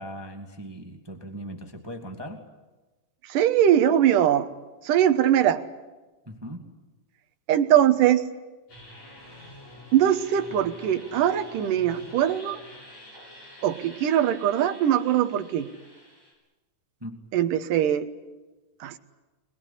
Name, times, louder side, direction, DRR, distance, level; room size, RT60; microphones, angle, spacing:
voice 1, 0.0-2.5 6.2-6.7 17.0-17.2, equal, 10° right, 4 dB, 1.6 m, -39 dB
voice 2, 3.3-4.5 4.8-5.6 7.5-8.2 9.9-12.6 13.6-15.7 17.3-18.1 18.8-19.0, right 10 dB, 80° right, 8 dB, 2.8 m, -21 dB
sound 1, 8.7-16.3, left 1 dB, 55° left, 9.5 m, -47 dB
23.5 x 21.5 x 9.9 m, 1.2 s
omnidirectional pair, 3.7 m